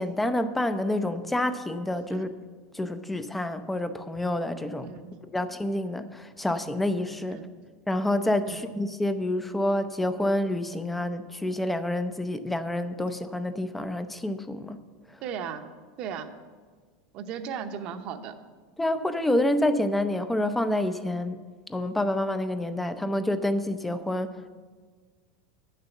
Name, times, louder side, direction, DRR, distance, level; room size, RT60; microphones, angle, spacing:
voice 1, 0.0-2.3 2.7-4.9 5.3-7.5 7.9-14.8 18.8-21.4 21.7-24.5, left 1 dB, 5° left, 10 dB, 0.5 m, -28 dB
voice 2, 4.8-5.2 7.3-7.5 15.2-15.6 16.0-16.3 17.1-18.3, right 7 dB, 45° right, 9 dB, 0.8 m, -36 dB
8.8 x 6.7 x 7.2 m, 1.5 s
supercardioid pair, 125°, 2 cm